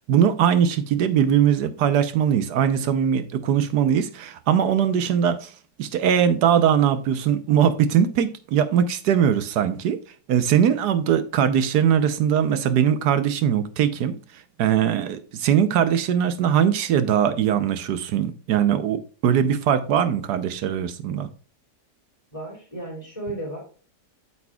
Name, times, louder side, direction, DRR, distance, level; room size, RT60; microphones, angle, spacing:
voice 1, 0.1-5.5 5.8-10.0 10.3-14.2 14.6-21.3, right 8 dB, 70° right, 1.3 m, -21 dB
voice 2, 22.3-23.6, right 1 dB, 20° left, 3.1 m, -34 dB
8.6 x 7.0 x 2.3 m
omnidirectional pair, 1.9 m